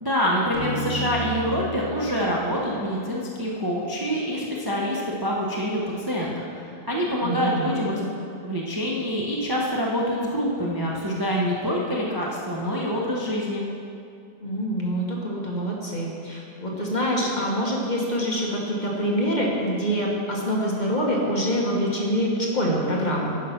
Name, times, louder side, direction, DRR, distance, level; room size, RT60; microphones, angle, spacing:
voice 1, 0.0-8.1 8.4-13.6, equal, 20° right, -4 dB, 0.5 m, -26 dB
sound 1, 0.5-4.0, left 1 dB, 55° left, 1.8 m, -34 dB
voice 2, 7.2-7.7 14.4-23.4, equal, 30° left, -3 dB, 1.3 m, -25 dB
10.0 x 5.8 x 5.7 m, 2.5 s
omnidirectional pair, 1.8 m